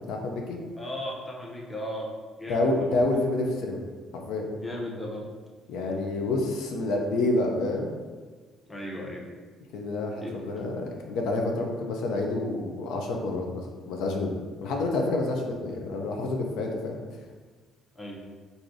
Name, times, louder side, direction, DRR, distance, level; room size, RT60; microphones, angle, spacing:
voice 1, 0.1-0.6 2.5-3.8 4.1-4.5 5.7-7.9 9.7-17.0, left 2 dB, 80° left, 1 dB, 0.5 m, -28 dB
voice 2, 0.8-2.1 2.4-3.0 4.5-5.3 8.7-9.3 10.2-10.5 14.6-14.8 18.0-18.2, left 1 dB, 10° left, -2 dB, 0.6 m, -36 dB
4.6 x 2.6 x 2.6 m, 1.4 s
cardioid pair, 140°, 0 cm